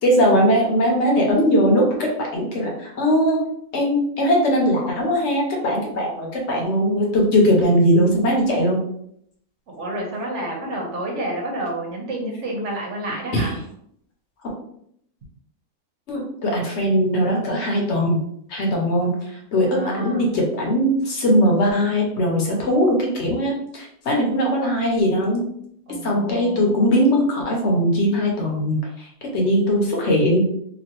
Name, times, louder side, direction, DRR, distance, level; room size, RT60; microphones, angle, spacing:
voice 1, 0.0-3.4 3.7-8.8 13.3-13.5 16.1-18.2 18.5-25.4 26.0-30.5, equal, 60° left, -1 dB, 1.0 m, -20 dB
voice 2, 9.7-13.5 19.6-20.3 25.9-26.8, right 1 dB, 60° right, -1 dB, 1.1 m, -29 dB
2.9 x 2.4 x 2.9 m, 0.69 s
omnidirectional pair, 1.5 m